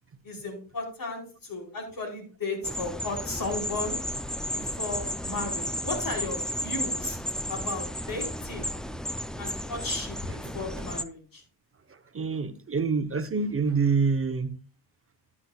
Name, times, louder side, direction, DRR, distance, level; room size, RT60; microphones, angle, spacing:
voice 1, 0.2-4.0 4.5-7.2 7.5-8.7 9.4-11.4, left 3 dB, 50° left, 4.6 m, -35 dB
sound 1, 2.6-11.0, equal, ahead, 0.5 m, -33 dB
voice 2, 11.9-14.6, right 5 dB, 30° right, 1.0 m, -27 dB
11.0 x 10.5 x 2.4 m
cardioid pair, 105°, 41 cm